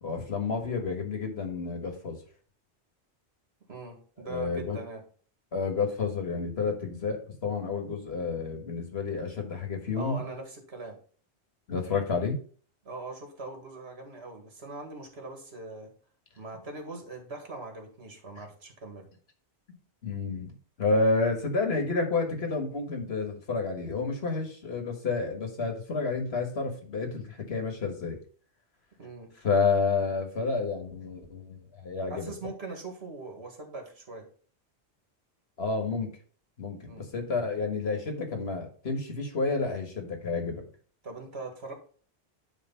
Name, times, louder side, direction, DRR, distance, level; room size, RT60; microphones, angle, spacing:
voice 1, 0.0-2.2 4.3-4.8 5.5-10.2 11.7-12.4 20.0-28.2 29.4-32.3 35.6-36.1 36.6-40.7, left 4 dB, 70° left, 4 dB, 1.8 m, -30 dB
voice 2, 3.7-5.0 10.0-11.0 12.9-15.9 16.4-19.1 29.0-29.3 32.1-34.3 36.8-37.1 41.0-41.7, right 3 dB, 70° right, 3 dB, 2.1 m, -41 dB
9.5 x 3.3 x 5.5 m, 0.44 s
omnidirectional pair, 1.1 m